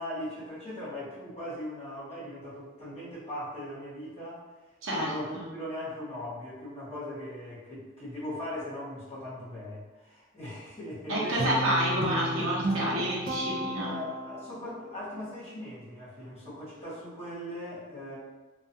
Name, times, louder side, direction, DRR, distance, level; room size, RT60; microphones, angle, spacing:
voice 1, 0.0-4.4 4.9-11.6 13.7-18.2, left 1 dB, 30° left, -10 dB, 1.0 m, -39 dB
voice 2, 4.8-5.5 11.1-13.9, right 1 dB, 80° right, -5 dB, 0.8 m, -29 dB
Guitar, 11.4-14.7, right 1 dB, 40° right, 0.4 m, -33 dB
2.3 x 2.3 x 2.7 m, 1.2 s
head